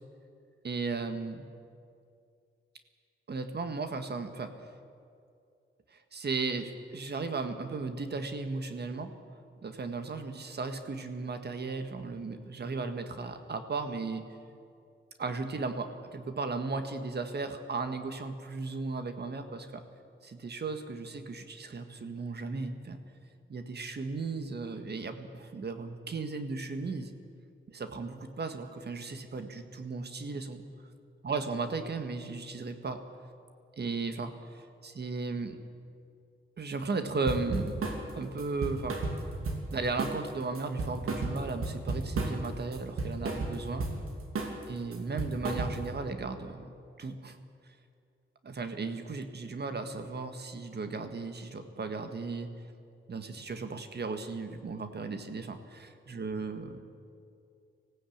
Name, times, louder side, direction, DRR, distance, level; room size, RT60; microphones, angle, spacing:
voice 1, 0.6-1.4 3.3-4.5 5.9-9.1 9.6-14.2 15.2-19.8 20.2-23.0 23.5-27.1 27.7-30.6 31.2-33.0 33.8-35.6 36.6-37.8 38.1-39.0 39.7-43.9 44.7-46.7 47.0-47.4 48.4-52.5 53.1-56.8, right 4 dB, 50° right, 7 dB, 1.7 m, -36 dB
sound 1, 37.3-38.0 38.4-39.7 40.0-40.3 40.6-42.5 42.7-44.0 44.4-44.6 44.9-46.0, right 3 dB, 85° right, 2.8 m, -33 dB
19.0 x 15.5 x 8.7 m, 2.4 s
cardioid pair, 85°, 21 cm